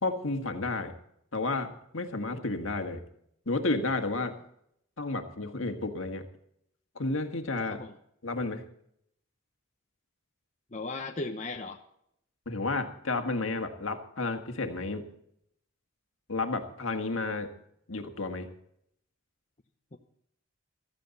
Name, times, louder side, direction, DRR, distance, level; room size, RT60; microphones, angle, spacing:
voice 1, 0.0-1.0 1.3-3.0 3.5-4.4 5.0-6.3 7.0-7.8 8.2-8.6 12.5-15.1 16.3-17.5 17.9-18.5, left 3 dB, 70° left, 6 dB, 1.7 m, -31 dB
voice 2, 10.7-11.8 19.9-20.0, left 3 dB, 35° left, 3 dB, 0.9 m, -36 dB
15.5 x 13.5 x 4.1 m, 0.73 s
head